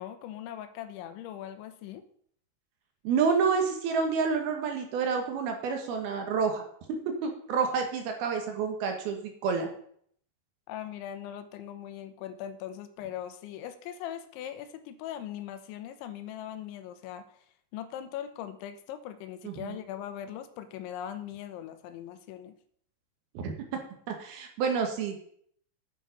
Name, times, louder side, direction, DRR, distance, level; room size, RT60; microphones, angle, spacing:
voice 1, 0.0-2.0 10.7-17.5 17.7-22.6, left 10 dB, 90° left, 10 dB, 3.3 m, -40 dB
voice 2, 3.0-6.6 7.1-9.7 19.4-19.7 23.3-23.5 24.1-25.2, right 5 dB, 65° right, 4 dB, 2.9 m, -29 dB
9.1 x 8.9 x 5.2 m, 0.63 s
omnidirectional pair, 5.3 m